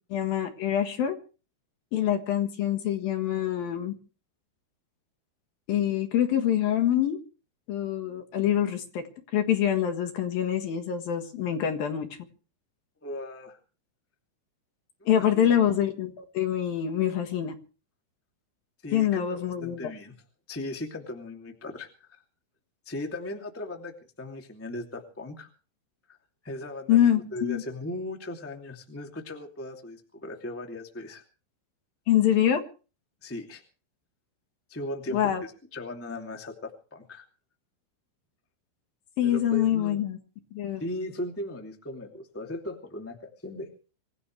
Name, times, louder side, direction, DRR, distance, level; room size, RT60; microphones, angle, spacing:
voice 1, 0.1-1.1 1.9-3.9 5.7-7.2 7.7-9.0 9.3-12.1 15.1-17.5 18.9-19.9 26.9-27.6 32.1-32.6 35.1-35.4 39.2-40.2 40.5-40.8, left 10 dB, 60° left, 6 dB, 2.7 m, -25 dB
voice 2, 13.0-13.6 15.0-15.6 18.8-20.1 20.5-22.1 22.8-25.5 26.4-31.2 33.2-33.6 34.7-37.2 39.2-40.0 40.8-43.7, left 1 dB, 15° left, 2 dB, 0.4 m, -38 dB
25.5 x 15.5 x 3.3 m, 0.37 s
omnidirectional pair, 5.6 m